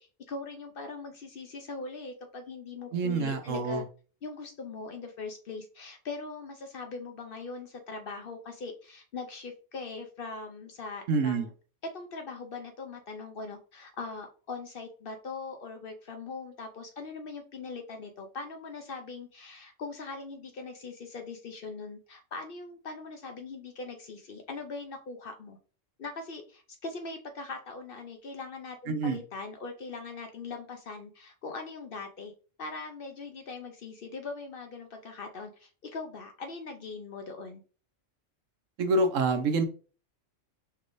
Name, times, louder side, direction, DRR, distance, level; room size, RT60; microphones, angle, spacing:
voice 1, 0.0-3.8 4.2-11.5 11.9-25.6 26.0-32.3 32.6-37.6, left 4 dB, 55° left, 5 dB, 0.7 m, -41 dB
voice 2, 2.9-3.8 11.1-11.5 28.9-29.2 38.8-39.6, right 3 dB, 80° right, 6 dB, 1.1 m, -27 dB
5.4 x 3.4 x 2.5 m, 0.38 s
omnidirectional pair, 1.3 m